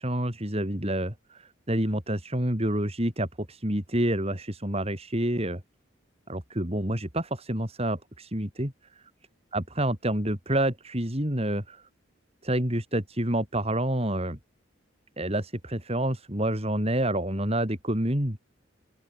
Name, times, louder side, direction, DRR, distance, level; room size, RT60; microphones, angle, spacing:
voice 1, 0.0-5.6 6.3-8.7 9.5-11.8 12.4-14.4 15.2-18.4, right 1 dB, 30° right, 4.2 m, -28 dB
open air
head